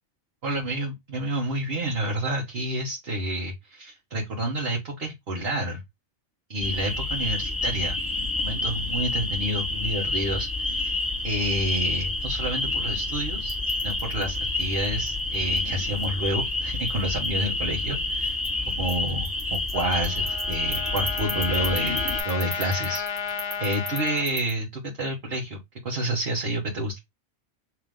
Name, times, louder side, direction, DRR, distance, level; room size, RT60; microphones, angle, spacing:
voice 1, 0.4-5.8 6.5-8.0 8.4-11.0 11.2-18.4 18.8-23.3 23.6-27.0, right 1 dB, 55° right, 1.4 m, -29 dB
sound 1, 6.6-22.2, left 2 dB, 15° left, 1.8 m, -28 dB
sound 2, 12.8-24.5, right 3 dB, 85° right, 2.0 m, -42 dB
Trumpet, 19.7-24.3, left 7 dB, 70° left, 1.0 m, -33 dB
4.8 x 2.9 x 3.7 m
omnidirectional pair, 1.3 m